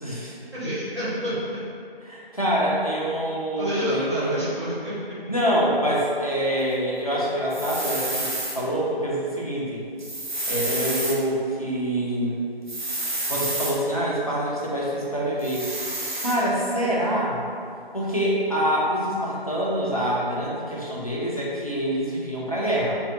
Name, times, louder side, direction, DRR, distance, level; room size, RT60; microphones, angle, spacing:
voice 1, 0.0-0.4 2.0-4.4 5.3-9.8 10.5-12.4 13.3-15.7 16.2-17.4 17.9-23.0, equal, 40° left, -6 dB, 0.4 m, -25 dB
voice 2, 0.5-1.6 3.6-5.2, equal, 30° right, -14 dB, 0.8 m, -29 dB
sound 1, 7.5-8.6 10.0-11.2 12.7-13.8 15.4-16.4, right 1 dB, 50° right, 0.4 m, -29 dB
2.5 x 2.5 x 2.5 m, 2.4 s
figure-of-eight pair, 170°, 31 cm